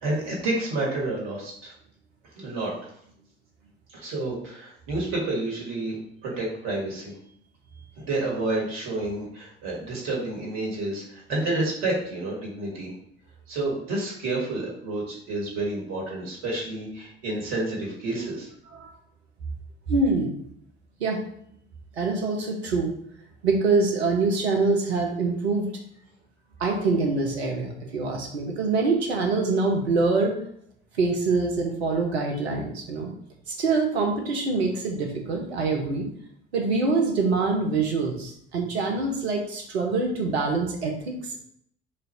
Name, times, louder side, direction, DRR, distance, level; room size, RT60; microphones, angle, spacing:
voice 1, 0.0-1.7 2.4-2.9 3.9-6.0 6.2-7.1 8.0-12.9 13.5-18.5, right 2 dB, 55° right, -3 dB, 1.8 m, -29 dB
voice 2, 19.9-20.3 21.0-21.2 22.0-22.9 23.4-25.7 26.6-30.3 31.0-33.1 33.5-36.1 36.5-41.2, right 3 dB, 75° right, 2 dB, 0.9 m, -25 dB
4.3 x 2.6 x 4.3 m, 0.68 s
figure-of-eight pair, 60°, 32 cm